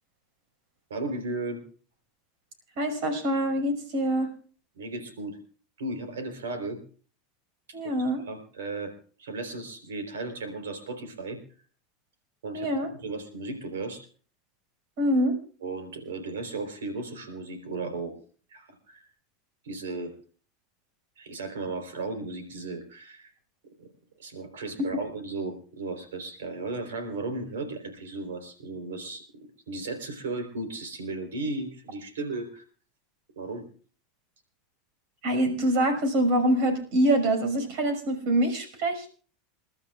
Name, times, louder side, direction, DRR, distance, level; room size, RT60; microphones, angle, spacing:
voice 1, 0.9-1.6 4.8-5.4 5.8-6.8 7.8-8.9 9.2-11.4 12.4-14.0 15.6-18.2 18.5-19.0 19.6-20.1 21.2-23.3 23.8-23.9 24.2-29.2 29.7-32.6 33.4-33.7, right 3 dB, 85° right, 6 dB, 3.9 m, -35 dB
voice 2, 2.8-4.3 7.7-8.2 12.5-12.9 15.0-15.3 35.2-39.1, right 1 dB, 65° right, 7 dB, 5.6 m, -25 dB
28.5 x 12.5 x 2.5 m, 0.42 s
hypercardioid pair, 100°, 0 cm